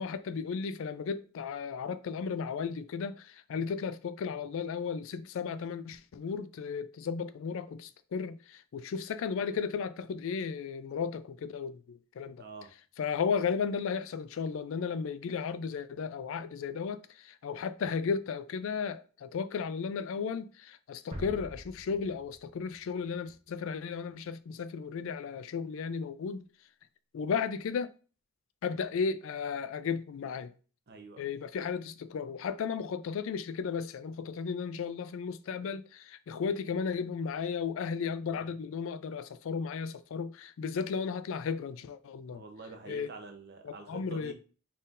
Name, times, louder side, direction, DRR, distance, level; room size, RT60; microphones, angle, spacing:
voice 1, 0.0-12.4 13.0-26.4 27.1-27.9 28.6-30.5 31.2-42.4 42.9-43.1 43.6-44.3, left 6 dB, 65° left, 0.3 m, -34 dB
voice 2, 12.4-12.7 30.9-31.3 38.2-38.5 42.2-44.3, right 4 dB, 50° right, 0.8 m, -47 dB
sound 1, 21.1-24.0, equal, 25° right, 0.9 m, -46 dB
4.2 x 3.6 x 2.5 m
head